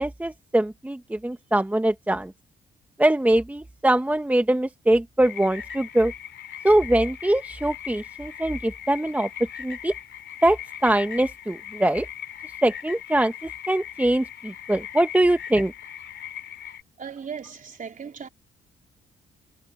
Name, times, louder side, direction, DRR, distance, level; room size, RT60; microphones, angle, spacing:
voice 1, 0.0-2.3 3.0-6.1 6.6-9.3 9.6-9.9 10.4-12.1 12.6-15.7, right 1 dB, 10° right, 1.1 m, -22 dB
sound 1, 5.2-16.8, left 10 dB, 65° left, 3.0 m, -39 dB
voice 2, 17.0-18.3, right 6 dB, 40° right, 3.6 m, -37 dB
cardioid pair, 90°, 20 cm